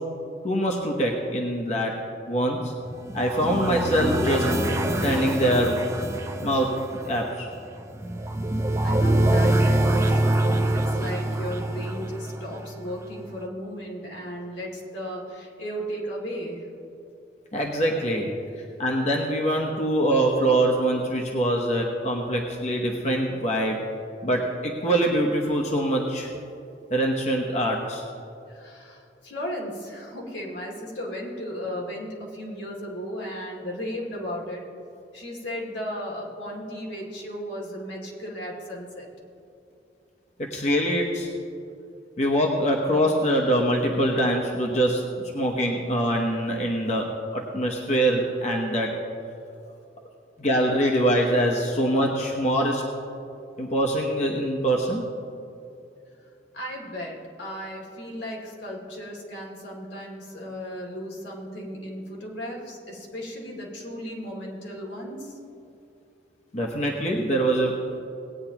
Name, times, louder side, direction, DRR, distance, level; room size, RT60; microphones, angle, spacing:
voice 1, 0.4-2.0 2.3-2.7 3.1-4.5 5.0-5.8 6.4-6.8 7.0-7.5 17.5-18.3 18.8-23.8 24.2-26.3 26.9-28.0 40.5-41.3 42.2-45.0 45.3-48.9 50.4-52.8 53.6-55.0 66.5-67.7, right 1 dB, 40° left, 0 dB, 1.0 m, -24 dB
sound 1, 2.9-12.9, right 1 dB, 15° right, 0.6 m, -25 dB
voice 2, 8.8-16.7 28.5-34.6 35.1-39.1 56.5-65.4, equal, 85° left, -2 dB, 2.5 m, -35 dB
18.5 x 9.4 x 2.9 m, 2.6 s
head